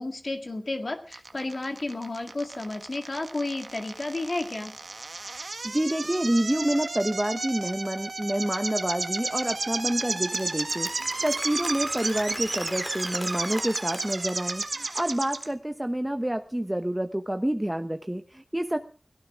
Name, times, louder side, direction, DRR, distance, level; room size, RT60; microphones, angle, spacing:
voice 1, 0.0-4.7, left 2 dB, 60° left, 5 dB, 2.1 m, -32 dB
sound 1, 1.1-15.4, right 3 dB, 80° right, 1.6 m, -33 dB
voice 2, 5.6-18.8, right 1 dB, 15° right, 6 dB, 1.1 m, -28 dB
Applause, 9.3-15.1, left 1 dB, 20° left, 2.3 m, -40 dB
18.5 x 17.0 x 3.7 m, 0.37 s
wide cardioid pair, 40°, 0 cm